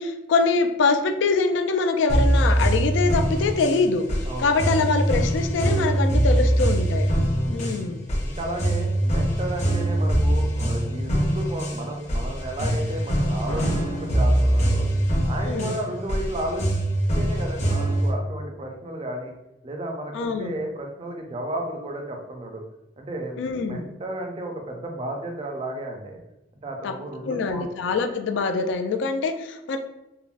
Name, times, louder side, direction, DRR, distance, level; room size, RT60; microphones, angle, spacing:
voice 1, 0.0-7.1 7.5-8.0 15.4-15.8 20.1-20.6 23.4-23.8 26.8-26.9 27.2-29.8, left 4 dB, 75° left, 6 dB, 0.3 m, -24 dB
sound 1, 2.1-18.1, right 1 dB, 40° left, 0.7 m, -23 dB
voice 2, 7.3-7.7 8.2-14.9 15.2-16.8 17.1-19.3 19.6-22.6 23.0-26.2 26.6-27.9, right 1 dB, 30° right, 2 dB, 0.4 m, -33 dB
Slam, 13.5-15.4, equal, 90° right, 0.6 m, -34 dB
3.6 x 2.0 x 2.4 m, 0.92 s
head